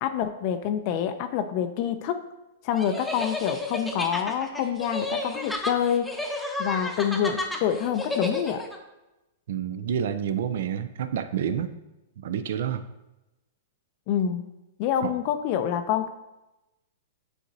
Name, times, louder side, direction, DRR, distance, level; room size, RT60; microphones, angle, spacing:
voice 1, 0.0-2.3 2.6-6.1 6.6-8.7 14.1-14.5 14.8-16.1, left 9 dB, 45° left, 8 dB, 0.4 m, -27 dB
sound 1, 2.8-8.8, left 2 dB, 5° left, 0.8 m, -32 dB
voice 2, 9.5-11.8 12.2-12.9 15.0-15.1, right 8 dB, 70° right, 11 dB, 0.4 m, -29 dB
9.0 x 4.0 x 2.7 m, 0.97 s
hypercardioid pair, 130°, 0 cm